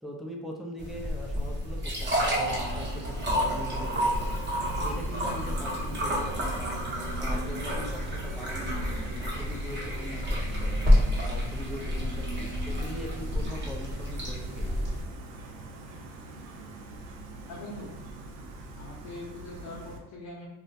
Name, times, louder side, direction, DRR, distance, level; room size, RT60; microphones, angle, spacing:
voice 1, 0.0-4.4 4.8-6.8 7.2-10.7 11.2-14.8, equal, ahead, -1 dB, 0.4 m, -41 dB
sound 1, 0.8-15.0, equal, 25° right, 0.8 m, -29 dB
Gull seagull, 2.5-20.0, right 1 dB, 70° right, 0.6 m, -41 dB
voice 2, 17.5-17.9 18.8-20.5, left 1 dB, 70° left, -5 dB, 0.7 m, -42 dB
2.2 x 2.1 x 2.7 m, 1.1 s
supercardioid pair, 70°, 40 cm